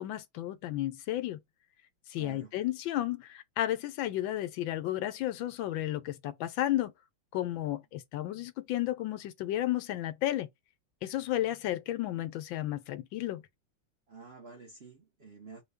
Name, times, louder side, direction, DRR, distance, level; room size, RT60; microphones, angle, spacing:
voice 1, 0.0-1.4 2.1-6.9 7.3-10.5 11.0-13.4, left 14 dB, 80° left, 1.4 m, -33 dB
voice 2, 2.2-2.6 14.1-15.6, right 4 dB, 45° right, 0.9 m, -49 dB
5.4 x 2.3 x 3.4 m
omnidirectional pair, 2.1 m